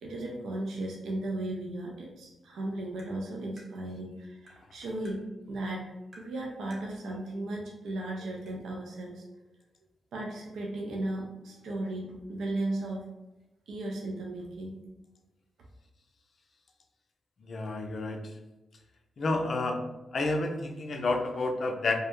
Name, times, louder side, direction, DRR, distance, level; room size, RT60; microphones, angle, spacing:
voice 1, 0.0-5.2 5.5-5.8 6.2-9.2 10.1-13.1 13.7-14.8, right 1 dB, 80° right, -1 dB, 0.4 m, -36 dB
Tap, 3.0-3.1 3.6-3.7 4.5-4.6 5.0-5.2 6.1-6.3 6.7-6.9 7.9-8.0 8.5-8.6, equal, 50° right, 0.9 m, -53 dB
voice 2, 17.4-18.2 19.2-19.8 20.1-22.0, left 2 dB, 60° left, 3 dB, 0.4 m, -30 dB
2.2 x 2.0 x 3.0 m, 1.0 s
cardioid pair, 55°, 0 cm